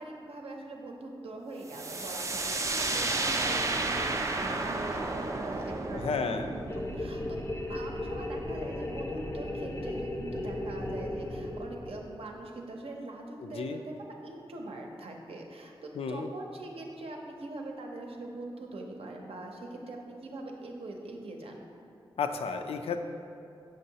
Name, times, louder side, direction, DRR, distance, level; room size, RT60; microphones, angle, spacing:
voice 1, 0.0-7.4 7.7-13.8 14.2-21.6, right 2 dB, 80° right, 1 dB, 0.7 m, -42 dB
sound 1, 1.7-9.3, right 2 dB, 30° right, 0.4 m, -33 dB
voice 2, 5.9-6.5 13.4-13.8 16.0-16.3 22.2-23.0, left 5 dB, 90° left, 6 dB, 0.4 m, -32 dB
sound 2, 6.7-12.4, left 1 dB, 30° left, 0.5 m, -36 dB
6.4 x 5.4 x 2.8 m, 2.6 s
wide cardioid pair, 130°, 10 cm